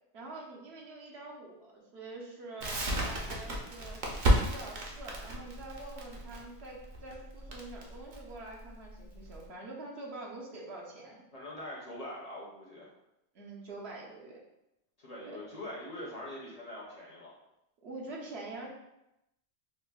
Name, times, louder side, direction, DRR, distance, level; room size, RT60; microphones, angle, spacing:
voice 1, 0.1-4.0 4.4-11.2 13.3-14.4 15.2-15.4 17.8-18.7, right 2 dB, 75° right, -2 dB, 1.0 m, -45 dB
Crackle, 2.6-9.4, right 1 dB, 50° right, 0.7 m, -32 dB
voice 2, 11.3-12.9 15.0-17.3, left 1 dB, 45° left, -5 dB, 0.6 m, -43 dB
5.1 x 2.0 x 2.3 m, 0.87 s
omnidirectional pair, 1.1 m